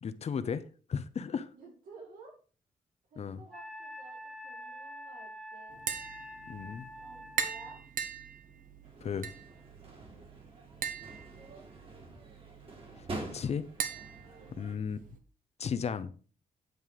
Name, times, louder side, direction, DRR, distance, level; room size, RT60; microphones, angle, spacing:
voice 1, 0.0-1.5 3.2-3.4 6.5-6.9 9.0-9.3 13.0-13.1 13.3-13.6 14.6-15.0 15.6-16.1, left 6 dB, 45° left, 0.7 m, -35 dB
voice 2, 1.5-2.4 3.1-5.8 7.0-7.8 11.4-11.6 11.9-12.1 14.2-14.6, right 3 dB, 85° right, 4.8 m, -54 dB
Wind instrument woodwind instrument, 3.5-7.8, equal, ahead, 1.1 m, -46 dB
Tap, 5.7-15.2, right 7 dB, 70° right, 1.1 m, -41 dB
sound 1, 8.8-14.8, right 2 dB, 40° right, 2.1 m, -46 dB
9.4 x 5.4 x 4.9 m
wide cardioid pair, 135°, 15 cm